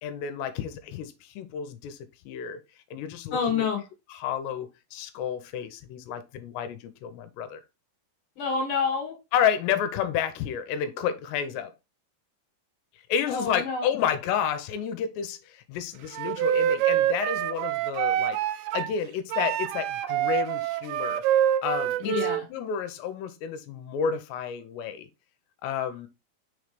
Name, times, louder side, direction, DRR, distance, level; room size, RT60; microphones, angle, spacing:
voice 1, 0.0-2.0 2.3-2.6 2.9-3.6 4.1-7.6 9.3-11.7 13.1-18.4 18.7-21.2 21.6-22.2 22.5-25.1 25.6-26.1, left 8 dB, 80° left, 2.8 m, -30 dB
voice 2, 3.3-3.8 8.4-9.2 13.3-13.9 22.0-22.5, left 5 dB, 60° left, 2.4 m, -28 dB
Wind instrument woodwind instrument, 16.1-18.9 19.3-22.4, right 11 dB, 85° right, 2.6 m, -26 dB
6.6 x 3.1 x 5.0 m
omnidirectional pair, 5.1 m